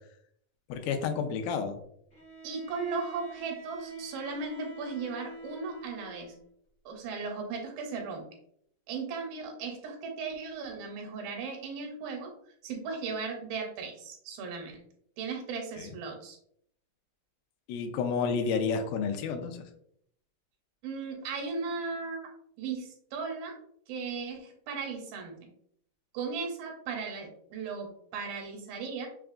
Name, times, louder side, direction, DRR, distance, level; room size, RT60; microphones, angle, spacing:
voice 1, 0.7-1.7 15.8-15.9 17.7-19.6, left 5 dB, 85° left, 5 dB, 2.4 m, -30 dB
Bowed string instrument, 2.1-6.4, right 2 dB, 65° left, 0.8 m, -46 dB
voice 2, 2.4-6.3 6.9-8.2 8.9-12.3 12.6-14.8 15.2-16.4 20.8-22.3 22.6-23.5 23.9-25.4 26.1-29.1, right 4 dB, 80° right, 2 dB, 2.6 m, -36 dB
5.8 x 2.3 x 2.4 m, 0.68 s
omnidirectional pair, 4.3 m